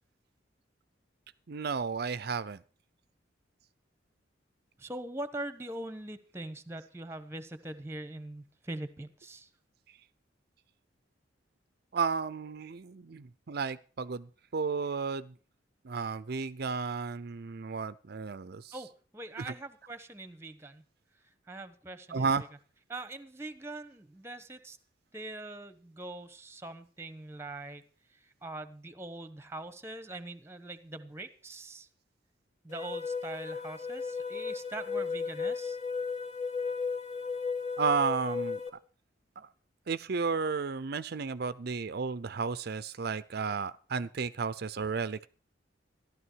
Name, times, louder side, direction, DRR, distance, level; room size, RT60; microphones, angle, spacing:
voice 1, 1.5-2.6 11.9-14.3 14.5-15.3 15.8-18.7 22.1-22.4 37.8-38.6 39.4-39.5 39.9-45.3, right 5 dB, 55° right, 15 dB, 0.6 m, -33 dB
voice 2, 4.8-9.5 18.7-20.8 21.5-22.5 22.9-24.8 25.1-27.8 28.1-31.9 32.6-35.8, right 2 dB, 15° right, 11 dB, 1.2 m, -42 dB
sound 1, 32.7-38.7, left 5 dB, 40° left, 2.2 m, -35 dB
14.0 x 12.0 x 4.7 m, 0.39 s
head